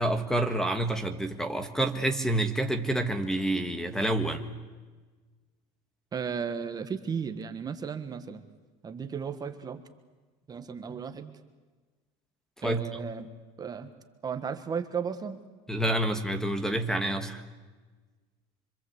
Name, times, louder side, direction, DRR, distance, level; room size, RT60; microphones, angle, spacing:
voice 1, 0.0-4.4 12.6-13.0 15.7-17.4, right 1 dB, 5° left, 8 dB, 1.5 m, -28 dB
voice 2, 6.1-8.4 8.8-9.8 10.5-11.3 12.6-13.3 13.6-13.9 14.2-15.4, right 6 dB, 25° right, 8 dB, 1.5 m, -34 dB
26.5 x 25.5 x 8.1 m, 1.3 s
cardioid pair, 150°, 16 cm